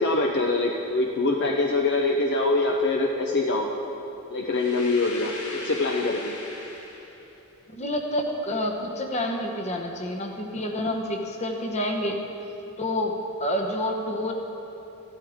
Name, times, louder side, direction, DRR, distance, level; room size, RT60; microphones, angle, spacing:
voice 1, 0.0-3.7 4.3-6.3, left 2 dB, 50° left, 1 dB, 0.6 m, -24 dB
sound 1, 4.5-7.3, left 2 dB, 80° left, 1.8 m, -39 dB
voice 2, 7.7-12.2 12.8-14.3, left 1 dB, 30° left, 3 dB, 1.0 m, -28 dB
15.0 x 12.0 x 3.6 m, 3.0 s
head